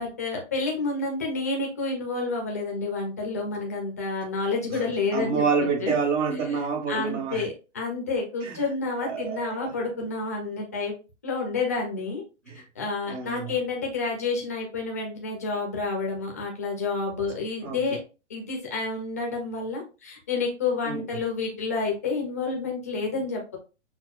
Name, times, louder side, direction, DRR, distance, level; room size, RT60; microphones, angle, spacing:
voice 1, 0.0-5.4 5.8-5.9 6.9-10.9 11.2-12.2 12.8-18.0 18.3-23.6, left 3 dB, 15° left, 0.3 m, -29 dB
voice 2, 4.8-7.5 8.4-8.6 9.1-9.7 12.5-12.6 13.1-13.6 17.6-17.8 20.8-21.0, right 5 dB, 90° right, 1.6 m, -28 dB
5.9 x 2.2 x 2.3 m
hypercardioid pair, 160°, 36 cm